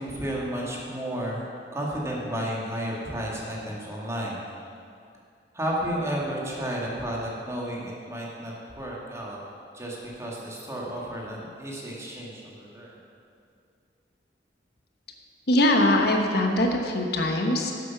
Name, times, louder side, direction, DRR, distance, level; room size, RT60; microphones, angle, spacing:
voice 1, 0.0-4.4 5.5-9.4 9.7-13.0, equal, 15° right, -4 dB, 1.9 m, -32 dB
voice 2, 15.5-17.8, left 1 dB, 65° left, 2 dB, 1.2 m, -22 dB
11.5 x 7.9 x 5.9 m, 2.4 s
head